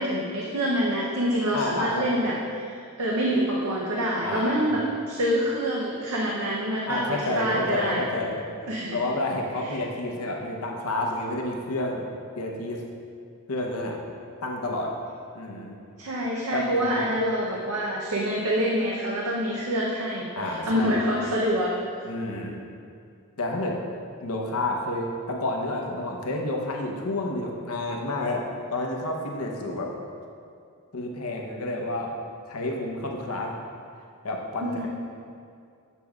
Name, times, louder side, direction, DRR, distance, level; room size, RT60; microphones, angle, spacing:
voice 1, 0.0-8.1 8.7-9.0 9.6-9.8 16.0-21.7 34.6-34.9, equal, 75° right, -3 dB, 0.7 m, -26 dB
voice 2, 1.5-2.1 4.2-4.7 6.9-8.4 8.9-12.1 12.4-12.8 13.5-14.0 14.4-14.9 15.3-15.8 16.5-17.0 20.3-21.0 22.0-22.6 23.4-23.8 24.2-29.9 30.9-32.1 32.5-33.5 34.2-34.9, left 2 dB, 80° left, 1 dB, 0.8 m, -30 dB
7.4 x 6.8 x 2.3 m, 2.4 s
head